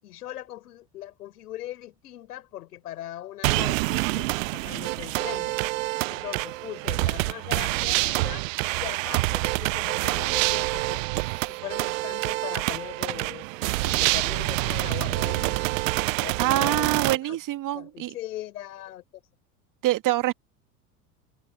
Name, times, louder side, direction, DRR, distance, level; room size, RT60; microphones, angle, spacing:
voice 1, 0.0-5.6 6.1-11.1 11.5-15.8 16.2-17.4 17.7-19.0, left 14 dB, 70° left, 6.7 m, -40 dB
sound 1, 3.4-17.2, right 23 dB, 55° right, 0.5 m, -27 dB
voice 2, 16.4-18.1 19.8-20.3, right 14 dB, 40° right, 2.1 m, -25 dB
figure-of-eight pair, 75°, 48 cm